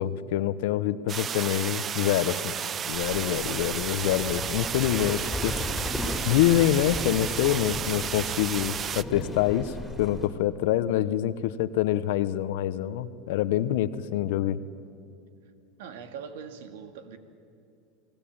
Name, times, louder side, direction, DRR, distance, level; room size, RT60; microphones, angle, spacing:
voice 1, 0.0-2.5 2.9-5.9 6.2-14.6, left 12 dB, 75° left, 14 dB, 1.1 m, -26 dB
sound 1, 1.1-9.0, right 8 dB, 35° right, 0.7 m, -33 dB
Livestock farm animals working animals, 2.9-10.3, left 1 dB, 5° left, 4.7 m, -36 dB
voice 2, 3.1-3.8 15.8-17.2, right 7 dB, 80° right, 8 dB, 2.3 m, -41 dB
30.0 x 19.5 x 8.9 m, 2.6 s
supercardioid pair, 105°, 0 cm